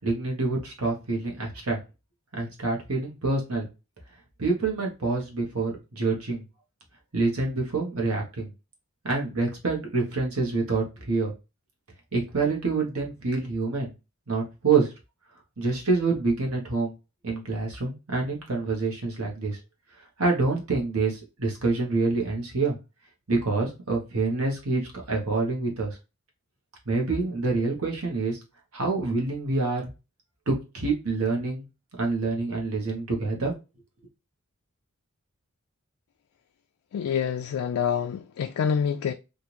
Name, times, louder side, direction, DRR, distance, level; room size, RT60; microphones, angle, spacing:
voice 1, 0.0-1.8 2.3-3.7 4.4-6.4 7.1-8.5 9.0-11.3 12.1-13.9 14.3-14.9 15.6-16.9 17.2-19.6 20.2-22.8 23.3-24.8 25.1-26.0 26.8-28.4 28.7-29.8 30.5-31.6 32.0-33.5, right 3 dB, 80° right, 1.3 m, -26 dB
voice 2, 36.9-39.1, left 7 dB, 75° left, 0.3 m, -26 dB
3.5 x 2.5 x 2.9 m
head